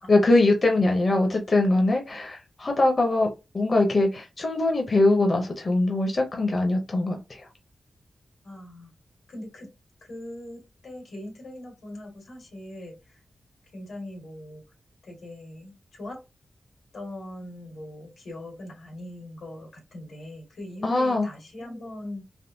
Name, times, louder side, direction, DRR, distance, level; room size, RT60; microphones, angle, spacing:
voice 1, 0.1-7.4 20.8-21.3, left 2 dB, 40° left, 0.6 m, -22 dB
voice 2, 8.4-8.9 9.3-9.7 10.0-13.2 13.7-14.6 15.0-16.2 16.9-22.2, left 1 dB, 90° left, 1.7 m, -41 dB
3.5 x 2.5 x 2.6 m
wide cardioid pair, 135°, 0 cm